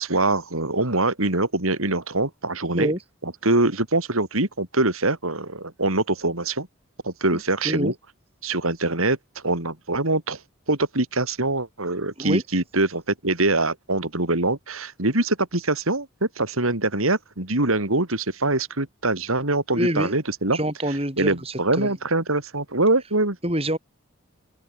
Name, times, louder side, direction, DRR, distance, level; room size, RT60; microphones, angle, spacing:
voice 1, 0.0-2.9 3.2-6.7 7.0-7.9 8.4-9.2 9.4-10.4 10.7-20.6 20.9-23.4, right 2 dB, 85° right, 4.2 m, -24 dB
voice 2, 19.7-20.1 20.5-21.9 23.4-23.8, right 1 dB, 30° right, 5.7 m, -25 dB
head